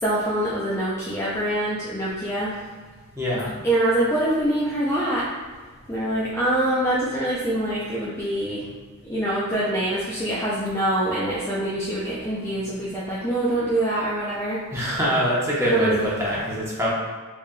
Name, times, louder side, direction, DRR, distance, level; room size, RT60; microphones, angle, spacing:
voice 1, 0.0-2.6 3.6-5.2 5.9-8.7 9.1-14.6 15.6-16.1, right 1 dB, 10° left, -8 dB, 0.4 m, -24 dB
voice 2, 3.2-3.5 14.7-16.9, equal, 10° right, -7 dB, 0.9 m, -24 dB
4.0 x 3.2 x 2.2 m, 1.4 s
head